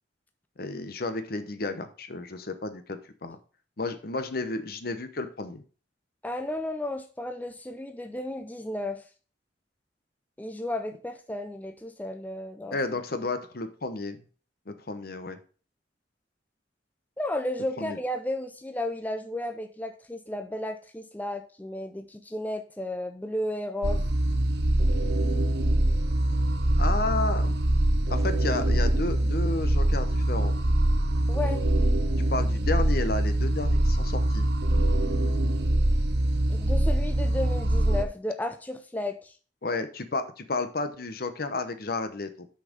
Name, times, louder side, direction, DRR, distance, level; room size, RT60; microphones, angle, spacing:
voice 1, 0.6-3.4 3.8-5.6 12.7-14.2 14.7-15.4 17.8-18.0 26.8-27.5 28.1-30.6 32.3-34.5 39.6-42.5, left 3 dB, 55° left, 9 dB, 0.9 m, -32 dB
voice 2, 6.2-9.0 10.4-12.8 17.2-24.0 31.3-31.6 36.5-39.4, left 1 dB, 10° left, 6 dB, 0.5 m, -33 dB
sound 1, 23.8-38.0, right 1 dB, 65° right, 0.9 m, -24 dB
6.3 x 5.7 x 5.1 m, 0.39 s
head